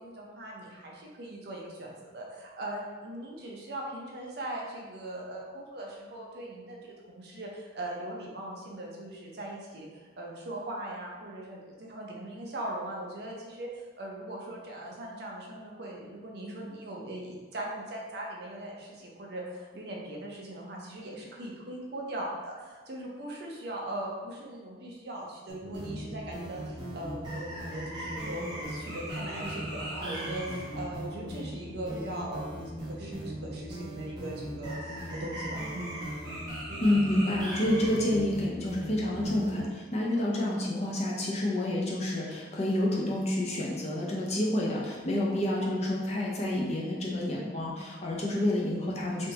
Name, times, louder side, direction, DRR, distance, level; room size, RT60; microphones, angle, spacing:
voice 1, 0.0-9.9 10.2-13.7 14.0-35.9, right 1 dB, 60° right, -2 dB, 0.6 m, -40 dB
sound 1, 25.5-39.6, right 1 dB, 25° right, 0.8 m, -38 dB
voice 2, 36.8-49.3, left 1 dB, 35° left, -3 dB, 0.5 m, -29 dB
3.4 x 2.7 x 2.8 m, 1.4 s
head